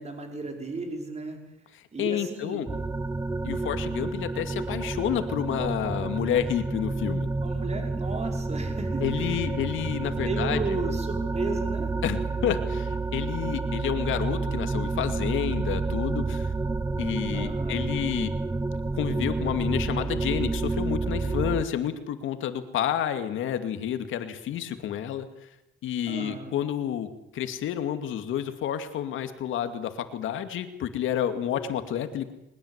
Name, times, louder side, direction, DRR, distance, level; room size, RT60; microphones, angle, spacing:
voice 1, 0.0-1.4 1.9-2.7 7.4-9.5 10.2-11.9 17.3-17.9 26.1-26.5, right 3 dB, 35° right, 3 dB, 5.4 m, -34 dB
voice 2, 2.0-2.7 3.4-7.3 9.0-10.6 12.0-16.5 17.0-18.3 18.9-25.3 25.8-32.3, left 10 dB, 80° left, 9 dB, 2.4 m, -30 dB
sound 1, 2.7-21.6, right 3 dB, 15° right, 0.9 m, -29 dB
22.0 x 21.0 x 8.3 m, 0.88 s
cardioid pair, 90°, 20 cm